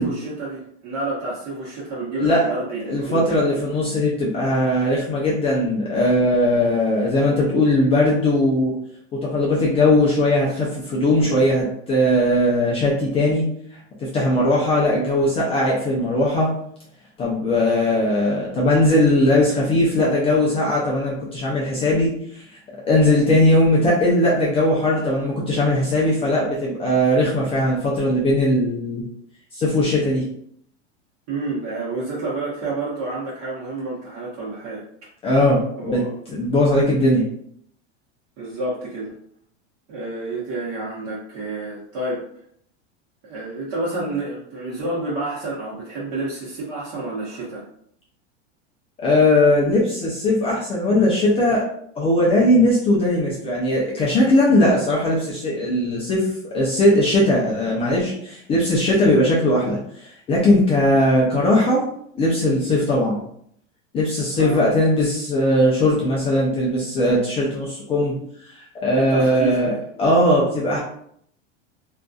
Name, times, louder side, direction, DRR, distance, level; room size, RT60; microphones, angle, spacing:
voice 1, 0.0-3.4 31.3-34.8 35.8-36.2 38.4-39.1 39.9-42.2 43.2-47.6 64.3-64.7 68.9-69.8, right 2 dB, 45° right, -7 dB, 0.8 m, -29 dB
voice 2, 2.9-8.8 9.2-13.5 14.0-16.5 17.2-22.4 22.9-29.0 29.6-30.3 35.2-36.0 36.3-37.3 49.0-51.7 52.0-59.8 60.3-61.9 62.2-63.2 63.9-68.1 68.5-69.7 70.0-70.8, left 1 dB, 15° left, -5 dB, 0.3 m, -19 dB
2.6 x 2.3 x 2.2 m, 0.67 s
supercardioid pair, 135°, 37 cm